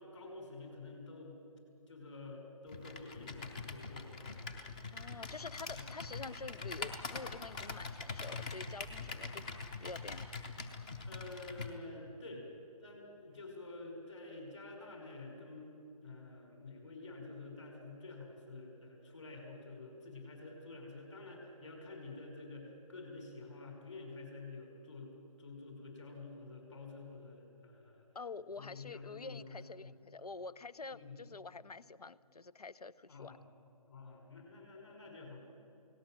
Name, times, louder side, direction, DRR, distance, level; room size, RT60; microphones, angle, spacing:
voice 1, 0.0-1.4 1.9-4.3 5.7-5.8 11.1-12.5 12.8-15.7 16.0-25.1 25.4-28.1 28.6-29.9 30.9-31.2 33.1-33.4 33.9-35.4, left 3 dB, 50° left, 2 dB, 5.7 m, -49 dB
Computer keyboard, 2.7-11.7, left 4 dB, 10° left, 0.7 m, -44 dB
voice 2, 4.9-9.5 9.8-10.3 28.1-33.4, left 4 dB, 80° left, 19 dB, 0.9 m, -47 dB
28.5 x 18.5 x 7.7 m, 2.7 s
figure-of-eight pair, 160°, 19 cm